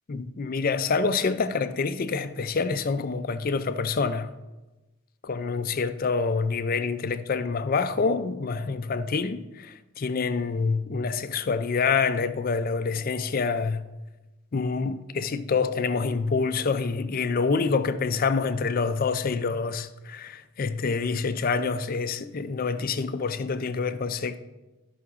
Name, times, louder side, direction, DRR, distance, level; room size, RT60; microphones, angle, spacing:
voice 1, 0.1-4.3 5.2-13.8 14.5-24.4, left 4 dB, 40° left, 0.4 m, -27 dB
12.5 x 5.8 x 3.6 m
head